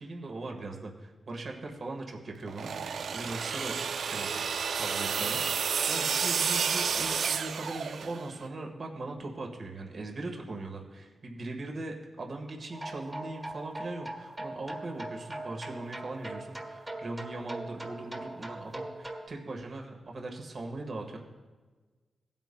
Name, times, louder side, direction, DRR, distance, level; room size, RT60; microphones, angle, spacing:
voice 1, 0.0-4.4 4.8-21.2, right 2 dB, 55° right, 1 dB, 1.4 m, -40 dB
sound 1, 2.5-8.3, right 6 dB, 75° right, 0.4 m, -31 dB
sound 2, 12.7-19.3, right 1 dB, 20° right, 1.5 m, -41 dB
16.0 x 9.1 x 2.2 m, 1.3 s
cardioid pair, 65°, 0 cm